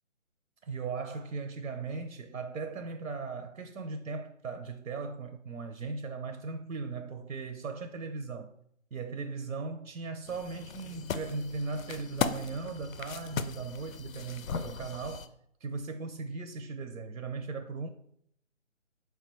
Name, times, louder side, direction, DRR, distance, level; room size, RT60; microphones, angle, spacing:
voice 1, 0.6-8.5 8.9-15.3 15.6-17.9, right 4 dB, 80° right, 0.6 m, -38 dB
sound 1, 10.3-15.3, left 6 dB, 80° left, 0.5 m, -37 dB
4.6 x 2.2 x 4.4 m
figure-of-eight pair, 170°, 40 cm